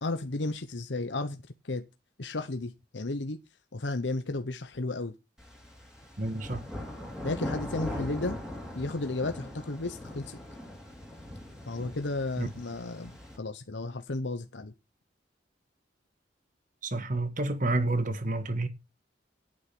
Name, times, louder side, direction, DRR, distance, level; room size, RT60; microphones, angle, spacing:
voice 1, 0.0-1.4 1.7-1.8 2.2-3.4 3.7-5.1 7.2-8.4 8.7-10.4 11.7-14.7, left 2 dB, 80° left, 1.0 m, -33 dB
sound 1, 5.4-13.4, left 1 dB, 5° right, 4.1 m, -40 dB
voice 2, 6.2-6.6 12.4-12.5 16.8-18.7, right 2 dB, 45° right, 1.6 m, -29 dB
9.8 x 8.9 x 6.1 m
head